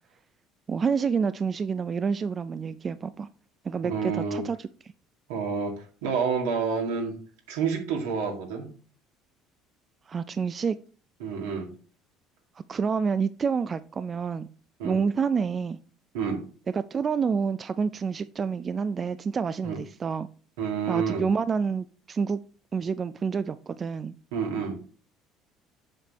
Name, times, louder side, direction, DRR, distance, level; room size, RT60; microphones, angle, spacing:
voice 1, 0.7-3.3 3.6-4.7 10.1-10.8 12.7-14.5 14.8-15.8 16.7-20.3 20.9-22.4 22.7-24.1, right 6 dB, 35° right, 13 dB, 0.4 m, -28 dB
voice 2, 3.8-4.4 5.3-7.1 7.5-8.7 11.2-11.7 14.8-15.0 16.1-16.4 19.6-19.8 20.6-21.2 24.3-24.8, right 6 dB, 80° right, 2 dB, 2.0 m, -29 dB
7.5 x 6.6 x 3.0 m, 0.40 s
hypercardioid pair, 65°, 0 cm